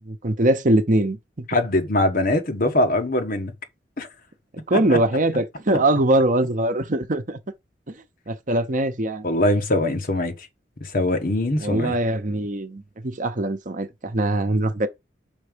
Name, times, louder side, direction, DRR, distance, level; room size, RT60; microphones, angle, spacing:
voice 1, 0.1-1.5 4.7-7.4 7.9-8.0 8.3-9.2 11.6-14.9, right 1 dB, 45° right, 0.9 m, -22 dB
voice 2, 1.5-3.5 4.0-4.1 4.7-5.0 9.2-10.5 10.8-11.9, left 1 dB, 50° left, 1.1 m, -22 dB
5.4 x 4.7 x 5.1 m
head